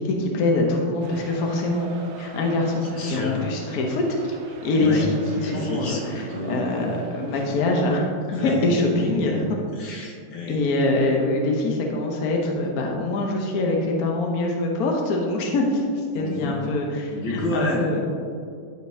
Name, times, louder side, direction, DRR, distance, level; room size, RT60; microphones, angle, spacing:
voice 1, 0.0-1.9 2.2-4.4 4.6-9.4 10.5-18.0, left 2 dB, 60° left, 0 dB, 1.2 m, -24 dB
sound 1, 1.0-7.8, right 4 dB, 80° right, 1.4 m, -43 dB
voice 2, 2.8-3.4 4.7-5.1 5.4-6.8 7.3-7.4 8.3-9.4 9.8-10.6 16.1-16.6 17.1-17.9, left 1 dB, 75° left, -1 dB, 1.9 m, -29 dB
12.0 x 5.2 x 2.7 m, 2.3 s
omnidirectional pair, 2.1 m